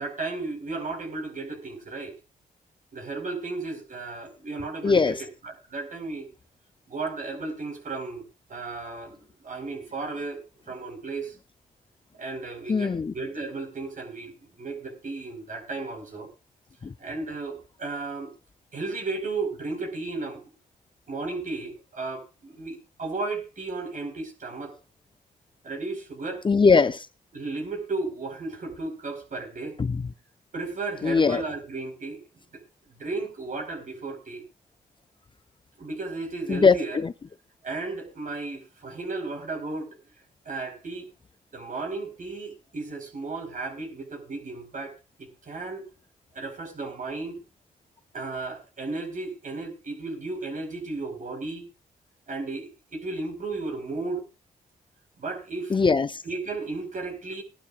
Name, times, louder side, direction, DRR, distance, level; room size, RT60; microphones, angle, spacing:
voice 1, 0.0-2.1 2.9-6.3 6.9-8.2 8.5-10.4 10.7-11.3 12.2-14.3 14.6-16.3 17.0-18.3 18.7-20.4 21.1-24.7 25.6-26.4 27.3-29.8 30.5-32.2 32.5-32.6 32.9-34.4 35.8-37.0 37.6-40.0 40.4-41.1 41.5-45.8 46.3-47.4 48.1-51.7 52.3-54.2 55.2-55.8 56.2-57.4, right 3 dB, 55° right, 4.7 m, -34 dB
voice 2, 4.8-5.2 12.7-13.1 16.8-16.9 26.4-27.1 29.8-30.0 31.0-31.4 36.5-36.8 55.7-56.2, left 4 dB, 30° left, 0.6 m, -20 dB
20.5 x 11.5 x 2.5 m
cardioid pair, 65°, 16 cm